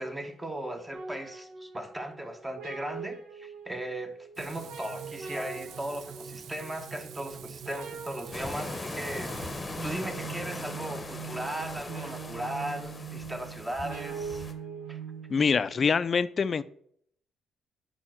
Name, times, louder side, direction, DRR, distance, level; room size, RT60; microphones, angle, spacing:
voice 1, 0.0-9.3 9.8-14.4 14.9-15.0, right 1 dB, 15° right, 7 dB, 0.9 m, -37 dB
sound 1, 0.9-15.8, right 6 dB, 85° right, 1.0 m, -42 dB
Frying (food), 4.4-10.7, right 8 dB, 70° right, 0.4 m, -46 dB
sound 2, 8.3-14.5, left 2 dB, 20° left, 0.8 m, -40 dB
voice 2, 15.3-16.6, left 5 dB, 45° left, 16 dB, 0.3 m, -25 dB
4.9 x 4.4 x 6.0 m, 0.67 s
cardioid pair, 90°, 0 cm